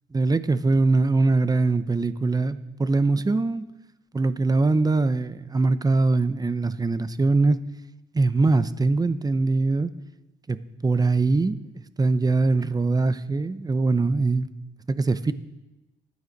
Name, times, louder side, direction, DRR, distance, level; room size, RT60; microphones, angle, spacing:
voice 1, 0.1-3.6 4.1-7.6 8.1-9.9 10.5-11.6 12.0-14.5 14.9-15.3, right 3 dB, 20° right, 13 dB, 0.7 m, -22 dB
14.0 x 9.5 x 5.3 m, 1.0 s
cardioid pair, 90°, 20 cm